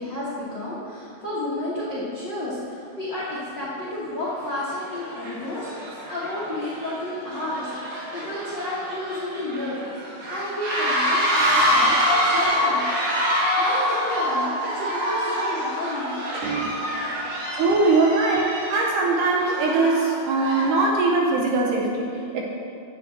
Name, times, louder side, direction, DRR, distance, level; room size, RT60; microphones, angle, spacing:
voice 1, 0.0-12.8 13.4-16.2 16.5-16.8, left 1 dB, 90° left, -9 dB, 0.9 m, -31 dB
sound 1, 3.5-3.6 4.3-4.5 4.9-20.9, equal, 55° right, 3.3 m, -26 dB
voice 2, 16.4-16.7 17.5-22.4, right 3 dB, 80° right, 0 dB, 1.9 m, -21 dB
7.0 x 6.0 x 7.3 m, 2.7 s
omnidirectional pair, 4.4 m